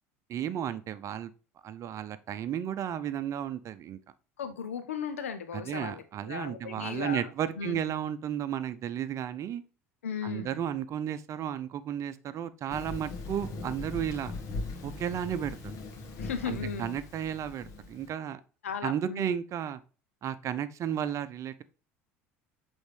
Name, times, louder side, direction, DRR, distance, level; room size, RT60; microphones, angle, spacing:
voice 1, 0.3-1.3 1.6-4.0 5.5-9.6 10.2-14.3 14.8-15.6 16.5-18.4 18.8-19.8 20.2-21.6, right 9 dB, 45° right, 0.7 m, -33 dB
voice 2, 4.4-7.9 10.0-10.6 16.2-17.0 18.6-19.3, left 7 dB, 85° left, 0.9 m, -36 dB
Thunder, 12.7-18.1, left 3 dB, 50° left, 1.6 m, -40 dB
8.0 x 3.6 x 3.3 m
hypercardioid pair, 70°, 7 cm